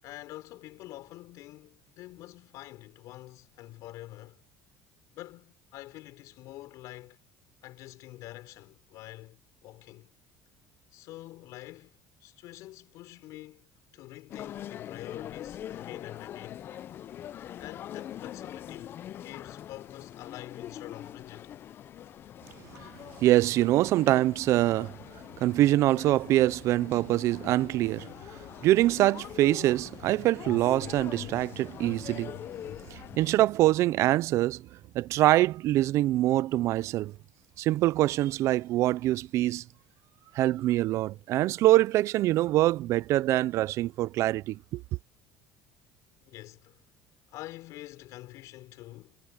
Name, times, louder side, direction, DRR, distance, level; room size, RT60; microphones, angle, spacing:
voice 1, 0.0-4.4 5.1-7.2 7.6-10.1 10.9-13.7 13.9-16.6 17.6-21.5 46.2-46.8 47.3-49.2, left 17 dB, 60° left, 5.6 m, -46 dB
sound 1, 14.3-33.6, left 11 dB, 35° left, 0.4 m, -43 dB
voice 2, 23.2-25.0 25.4-32.4 32.9-34.7 34.9-37.1 37.6-39.6 40.3-44.8, right 15 dB, 50° right, 0.4 m, -24 dB
cardioid pair, 150°, 6 cm